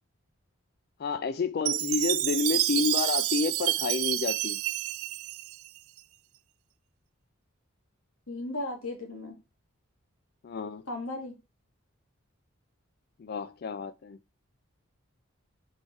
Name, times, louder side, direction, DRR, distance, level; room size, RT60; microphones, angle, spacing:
voice 1, 1.0-4.6 10.4-10.8 13.2-14.2, left 5 dB, 45° left, 0.3 m, -30 dB
Chime, 1.7-6.0, right 16 dB, 85° right, 0.4 m, -29 dB
voice 2, 8.3-9.4 10.9-11.3, left 2 dB, 85° left, 2.5 m, -35 dB
5.3 x 4.8 x 4.5 m
head